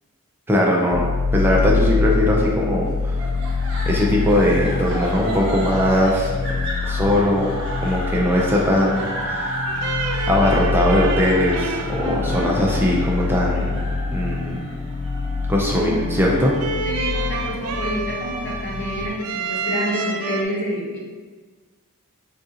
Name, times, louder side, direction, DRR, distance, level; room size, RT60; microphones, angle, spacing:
voice 1, 0.5-1.0 1.3-3.2 3.9-6.3 6.8-7.5 7.8-9.5 10.3-13.8 14.1-14.6 15.5-16.5, left 1 dB, 10° right, -3 dB, 0.5 m, -20 dB
sound 1, 0.9-19.1, left 4 dB, 70° left, 0.4 m, -26 dB
sound 2, 3.2-16.3, right 1 dB, 60° right, 1.0 m, -32 dB
sound 3, 9.7-20.4, right 4 dB, 85° right, 0.4 m, -30 dB
voice 2, 15.7-16.1 16.8-21.0, equal, 55° left, -3 dB, 0.9 m, -28 dB
6.4 x 2.5 x 2.7 m, 1.4 s
head